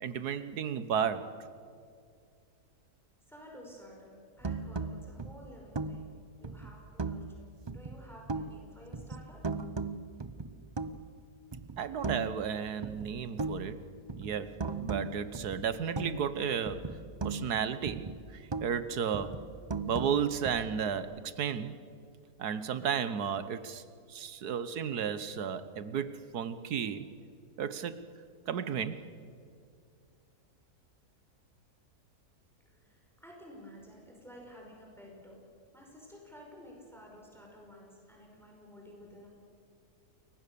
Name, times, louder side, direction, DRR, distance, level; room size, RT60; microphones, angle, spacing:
voice 1, 0.0-1.3 11.8-13.8 14.1-17.0 17.2-19.4 19.9-21.8 22.4-23.8 24.1-27.1 27.6-28.1 28.5-29.1, right 7 dB, 80° right, 12 dB, 1.6 m, -33 dB
voice 2, 3.3-6.1 6.4-9.4 32.7-35.4 35.7-39.3, equal, ahead, -1 dB, 5.3 m, -52 dB
sound 1, 4.4-7.4 7.7-8.7 8.9-11.2 11.5-12.5 12.8-16.4 16.7-18.8 19.1-21.0, right 3 dB, 25° right, 0.5 m, -38 dB
29.5 x 22.5 x 7.0 m, 2.3 s
omnidirectional pair, 1.6 m